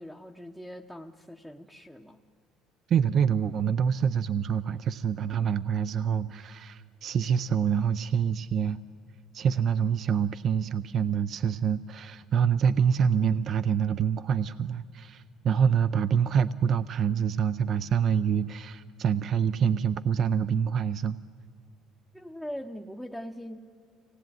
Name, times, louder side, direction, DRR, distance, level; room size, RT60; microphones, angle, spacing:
voice 1, 0.0-2.2 22.1-23.6, equal, ahead, 1 dB, 0.8 m, -41 dB
voice 2, 2.9-8.8 9.3-21.2, right 7 dB, 45° right, 13 dB, 0.5 m, -26 dB
25.0 x 18.5 x 9.3 m, 2.2 s
cardioid pair, 130°, 0 cm